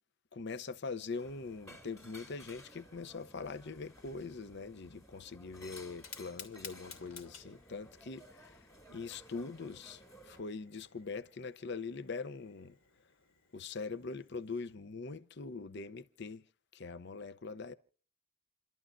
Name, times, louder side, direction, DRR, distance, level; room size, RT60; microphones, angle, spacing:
voice 1, 0.3-12.8 13.5-16.4 16.7-17.7, left 4 dB, 50° left, 0.6 m, -43 dB
sound 1, 1.2-10.4, left 1 dB, 15° left, 2.4 m, -56 dB
Fire, 5.9-14.7, left 6 dB, 70° left, 3.0 m, -55 dB
29.0 x 12.5 x 2.6 m
head